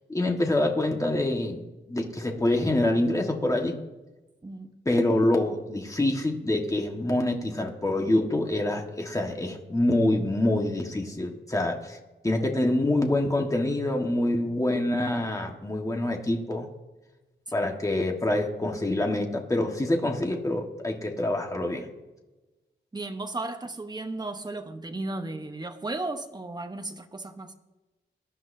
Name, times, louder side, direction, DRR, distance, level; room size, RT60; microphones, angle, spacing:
voice 1, 0.1-1.6 1.9-3.8 4.8-12.0 12.2-16.7 17.5-21.9, left 1 dB, 15° left, 1.5 m, -26 dB
voice 2, 22.9-27.5, right 2 dB, 20° right, 1.0 m, -35 dB
21.5 x 10.5 x 2.7 m
wide cardioid pair, 140°, 19 cm